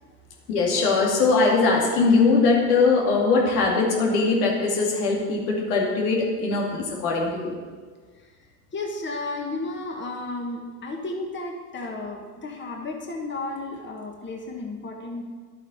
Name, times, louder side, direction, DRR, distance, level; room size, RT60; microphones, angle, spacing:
voice 1, 0.5-7.5, left 3 dB, 75° left, -1 dB, 2.4 m, -21 dB
voice 2, 8.7-15.2, left 2 dB, 25° left, 1 dB, 1.6 m, -33 dB
11.0 x 8.2 x 4.3 m, 1.5 s
hypercardioid pair, 85°, 47 cm